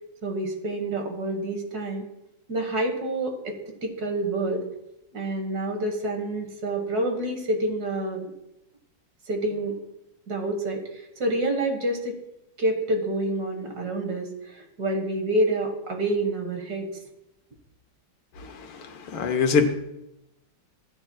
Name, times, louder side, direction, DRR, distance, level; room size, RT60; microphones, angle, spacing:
voice 1, 0.2-2.0 2.5-3.5 3.8-4.6 5.1-8.3 9.3-9.7 10.3-12.2 12.6-16.9, right 1 dB, 50° right, 2.0 m, -28 dB
voice 2, 18.4-19.7, left 5 dB, 90° left, 2.0 m, -25 dB
16.0 x 8.8 x 2.3 m
omnidirectional pair, 2.3 m